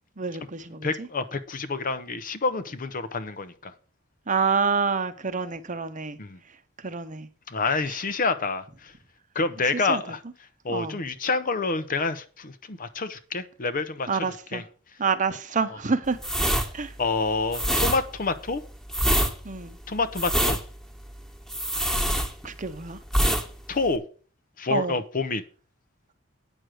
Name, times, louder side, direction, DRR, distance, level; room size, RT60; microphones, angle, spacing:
voice 1, 0.2-1.1 4.3-6.2 6.8-7.3 9.7-10.0 10.7-11.0 14.1-14.6 15.0-16.2 16.7-16.9 19.4-19.8 22.4-23.0 24.7-25.0, right 5 dB, 40° right, 0.8 m, -27 dB
voice 2, 0.8-3.7 6.2-6.4 7.5-8.9 9.3-10.2 10.6-14.6 17.0-18.6 19.9-20.6 23.7-24.0 24.6-25.4, left 3 dB, 40° left, 0.7 m, -28 dB
sound 1, 16.2-22.7 23.1-23.5 23.7-24.0, equal, ahead, 1.4 m, -25 dB
9.0 x 6.3 x 6.3 m
head